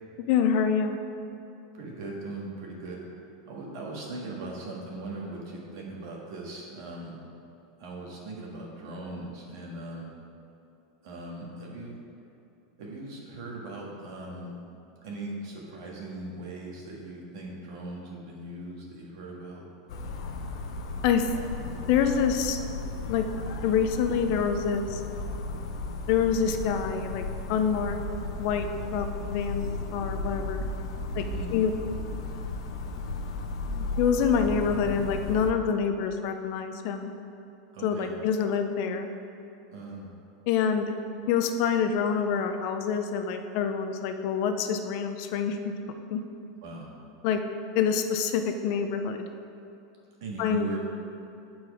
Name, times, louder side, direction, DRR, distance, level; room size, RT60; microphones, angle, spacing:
voice 1, 0.2-1.0 21.0-21.3 21.9-22.6 23.1-23.2 23.6-25.0 26.1-28.0 28.4-28.7 28.9-30.6 31.2-31.3 31.5-31.7 34.0-37.1 37.8-39.1 40.5-41.0 41.3-45.7 46.1-46.2 47.2-47.4 47.7-49.3 50.4-50.7, left 7 dB, 40° left, 7 dB, 0.4 m, -26 dB
voice 2, 1.7-3.0 3.4-7.2 7.8-10.1 11.0-12.0 12.8-14.6 15.0-19.6 31.2-31.5 37.7-38.1 39.7-40.1 46.6-46.9 50.2-50.8, right 2 dB, 55° right, -2 dB, 1.7 m, -39 dB
sound 1, 19.9-35.5, left 2 dB, 85° left, 0.7 m, -35 dB
8.6 x 4.7 x 4.9 m, 2.8 s
supercardioid pair, 180°, 3 cm